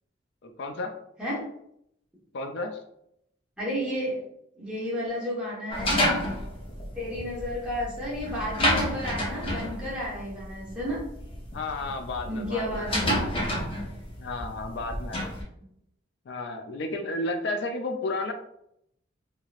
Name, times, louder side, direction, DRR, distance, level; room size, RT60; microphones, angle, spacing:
voice 1, 0.4-0.9 2.3-2.8 11.5-13.1 14.2-15.3 16.3-18.3, left 2 dB, 60° left, 5 dB, 0.4 m, -32 dB
voice 2, 3.6-4.2 4.6-6.2 6.9-11.0 12.2-13.2, equal, 5° right, -8 dB, 1.2 m, -32 dB
sound 1, 5.7-15.4, equal, 30° left, 0.7 m, -30 dB
3.1 x 2.8 x 2.4 m, 0.75 s
head